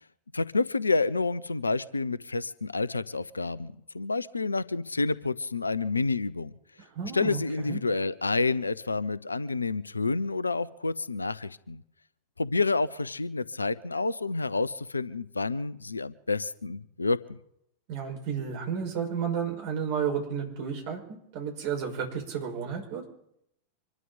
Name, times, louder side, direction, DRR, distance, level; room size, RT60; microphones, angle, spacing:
voice 1, 0.3-6.5 7.1-11.8 12.4-17.4, left 3 dB, 80° left, 19 dB, 0.6 m, -29 dB
voice 2, 6.8-7.8 17.9-23.0, right 7 dB, 50° right, 1 dB, 5.6 m, -32 dB
26.0 x 12.5 x 4.1 m, 0.77 s
figure-of-eight pair, 90°, 0 cm